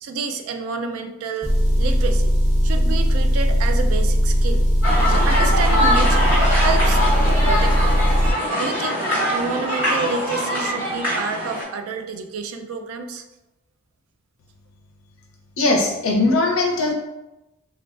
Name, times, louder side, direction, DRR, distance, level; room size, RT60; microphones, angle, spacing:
voice 1, 0.0-2.3 2.6-4.7 5.1-6.3 6.6-7.0 7.3-7.9 8.6-9.0 9.3-13.2, right 4 dB, 85° right, 6 dB, 0.3 m, -29 dB
Motor vehicle (road) / Engine, 1.4-8.3, equal, 30° right, 0.6 m, -18 dB
sound 1, 4.8-11.6, equal, 10° right, 1.1 m, -22 dB
voice 2, 15.6-16.9, left 2 dB, 80° left, 0 dB, 0.6 m, -19 dB
3.3 x 2.2 x 2.3 m, 0.97 s
head